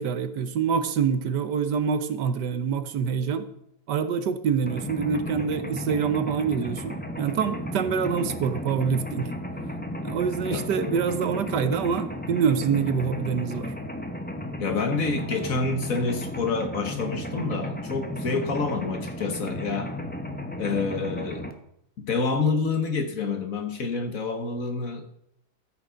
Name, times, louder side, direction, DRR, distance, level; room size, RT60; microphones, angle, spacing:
voice 1, 0.0-3.5 3.9-9.3 10.0-13.7, right 6 dB, 65° right, 11 dB, 1.4 m, -26 dB
Mechanisms, 4.7-21.5, left 1 dB, 10° left, 0.6 m, -34 dB
voice 2, 14.6-20.0 20.6-21.5 22.0-25.1, left 4 dB, 50° left, 6 dB, 1.8 m, -28 dB
14.0 x 8.2 x 5.1 m, 0.76 s
omnidirectional pair, 2.0 m